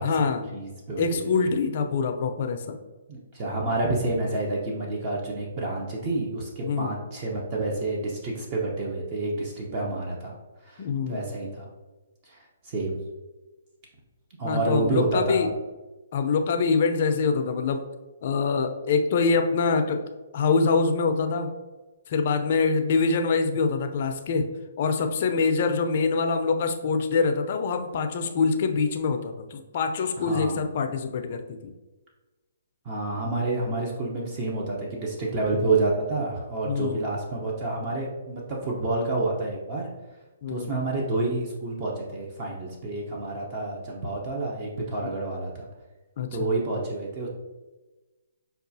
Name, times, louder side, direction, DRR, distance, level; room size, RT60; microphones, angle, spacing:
voice 1, 0.0-0.5 1.0-2.8 6.6-7.0 10.8-11.2 14.4-15.5 16.1-17.8 18.2-20.0 20.3-21.5 22.1-24.5 24.8-31.7 36.7-37.0 40.4-40.7 45.0-45.1 46.2-46.5, left 4 dB, 45° left, 6 dB, 0.4 m, -25 dB
voice 2, 0.5-1.3 3.1-10.4 10.6-11.7 12.2-13.0 14.4-15.5 30.2-30.6 32.8-39.9 40.5-45.7 46.3-47.3, right 2 dB, 30° right, -2 dB, 0.7 m, -29 dB
5.4 x 2.3 x 2.6 m, 1.2 s
hypercardioid pair, 155°, 0 cm